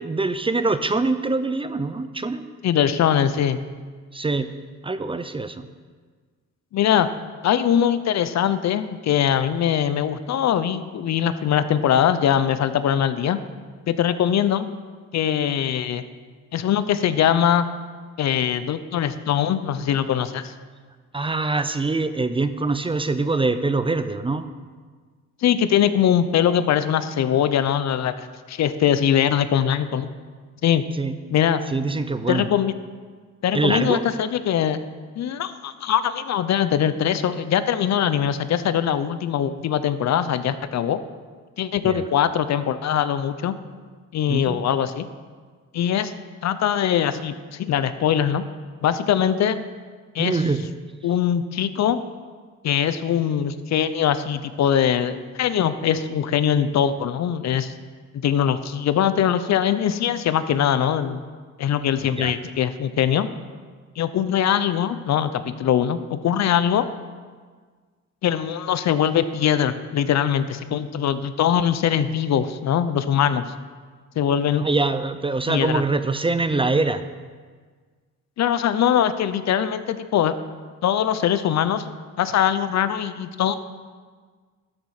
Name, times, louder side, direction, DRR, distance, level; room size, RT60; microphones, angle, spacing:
voice 1, 0.0-2.4 4.1-4.5 4.8-5.7 21.1-24.4 31.0-31.2 31.7-32.5 33.5-34.0 41.8-42.0 44.3-44.6 50.2-50.6 62.1-62.3 74.6-77.0, right 3 dB, 20° right, 11 dB, 0.6 m, -24 dB
voice 2, 2.6-3.6 6.7-7.1 7.4-13.4 13.9-14.7 15.1-16.0 16.5-17.7 18.2-20.5 25.4-30.1 30.6-30.8 31.3-31.6 32.3-32.7 33.4-34.8 35.2-41.0 41.6-43.5 44.1-45.1 45.7-46.1 46.4-48.4 48.8-49.6 50.1-50.4 51.0-52.0 52.6-57.7 58.1-61.2 61.6-63.3 64.0-66.9 68.2-73.4 74.2-74.7 75.5-75.8 78.4-80.4 80.8-81.8 82.2-83.6, left 9 dB, 60° left, 12 dB, 0.7 m, -22 dB
12.5 x 7.5 x 4.9 m, 1.5 s
cardioid pair, 90°, 30 cm